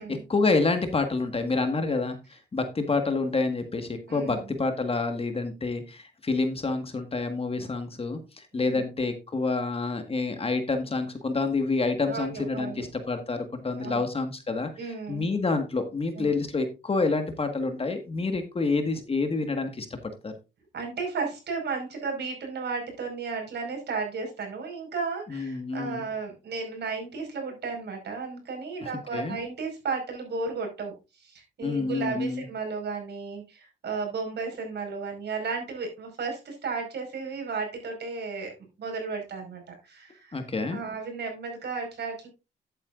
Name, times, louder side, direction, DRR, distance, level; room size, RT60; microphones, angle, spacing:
voice 1, 0.1-19.9 20.2-20.3 25.3-26.0 28.8-29.4 31.6-32.4 40.3-40.8, left 3 dB, 30° left, 7 dB, 1.6 m, -28 dB
voice 2, 4.1-4.4 8.7-8.8 12.1-12.8 13.8-14.0 14.8-15.3 16.2-16.3 20.7-40.4 40.7-42.3, right 4 dB, 60° right, 2 dB, 5.1 m, -34 dB
11.0 x 8.7 x 2.5 m, 0.27 s
cardioid pair, 90°, 20 cm